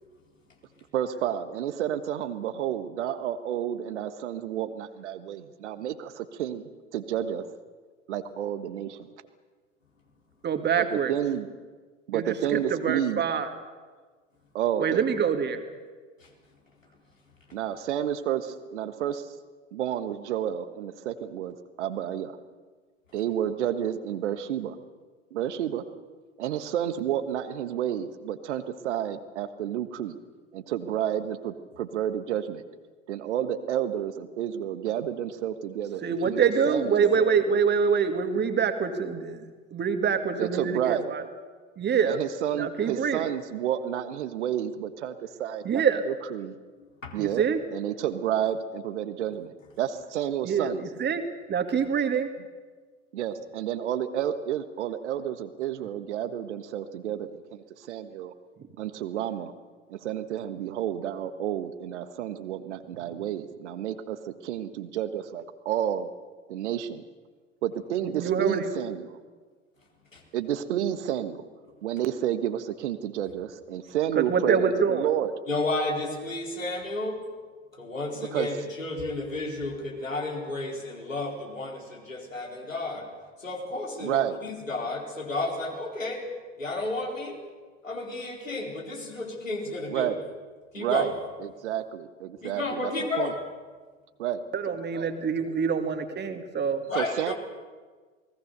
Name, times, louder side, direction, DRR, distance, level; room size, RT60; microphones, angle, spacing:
voice 1, 0.9-7.5 8.1-9.1 10.8-11.5 12.1-13.2 14.5-15.0 17.5-19.3 19.7-22.4 23.1-24.8 25.3-25.8 26.4-30.1 30.5-32.6 33.1-36.4 36.7-37.1 40.4-41.0 42.0-45.7 46.1-46.6 47.1-47.4 47.7-50.8 53.1-58.3 58.8-59.5 59.9-66.1 66.5-67.0 67.6-69.2 70.3-71.4 71.8-75.3 78.2-78.5 84.0-84.4 89.9-90.2 90.8-91.1 91.4-92.9 93.2-93.3 94.2-94.4 94.7-94.8 96.9-97.3, right 10 dB, 65° right, 10 dB, 1.6 m, -30 dB
voice 2, 10.4-11.1 12.1-13.5 14.8-15.6 36.0-41.2 41.8-42.2 42.6-43.3 45.6-46.1 47.2-47.6 50.4-52.3 68.2-68.7 74.2-75.1 94.5-96.8, right 6 dB, 25° right, 7 dB, 2.3 m, -25 dB
voice 3, 46.8-47.2 70.1-70.2 75.5-77.3 77.7-83.1 83.4-86.3 86.6-87.4 87.8-90.1 90.7-91.1 92.4-93.4 96.9-97.3, left 2 dB, 85° left, 0 dB, 4.1 m, -32 dB
28.5 x 19.5 x 6.8 m, 1.4 s
figure-of-eight pair, 75°, 38 cm